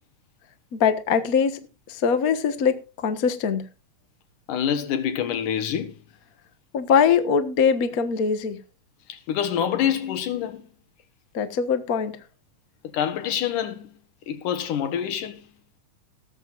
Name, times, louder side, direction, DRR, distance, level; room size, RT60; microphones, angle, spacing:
voice 1, 0.7-1.6 1.9-3.6 6.7-8.6 11.3-12.2, left 6 dB, 50° left, 1.0 m, -22 dB
voice 2, 4.5-6.0 9.1-10.6 12.9-13.9 14.3-15.5, left 9 dB, 80° left, 3.0 m, -26 dB
17.0 x 14.0 x 2.5 m
omnidirectional pair, 3.6 m